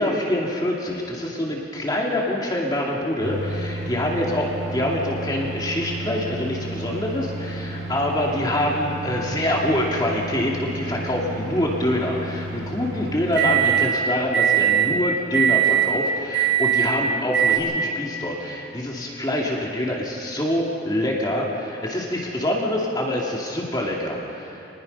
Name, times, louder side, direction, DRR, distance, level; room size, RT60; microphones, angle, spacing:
voice 1, 0.0-4.4 4.7-24.6, left 1 dB, 20° left, -2 dB, 2.3 m, -25 dB
sound 1, 3.2-13.9 14.3-14.9 15.3-15.9 16.3-16.9 17.3-17.6, right 8 dB, 70° right, 5.4 m, -25 dB
27.5 x 20.5 x 5.4 m, 2.9 s
head